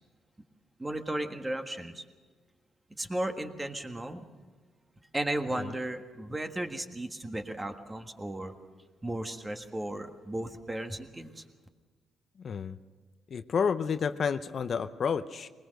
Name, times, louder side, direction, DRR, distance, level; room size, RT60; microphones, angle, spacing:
voice 1, 0.8-2.0 3.0-4.2 5.1-8.5 9.0-11.4, right 1 dB, 15° right, 6 dB, 1.6 m, -35 dB
voice 2, 12.4-12.8 13.3-15.5, left 6 dB, 50° left, 10 dB, 0.7 m, -30 dB
21.0 x 20.0 x 6.5 m, 1.4 s
cardioid pair, 90°, 0 cm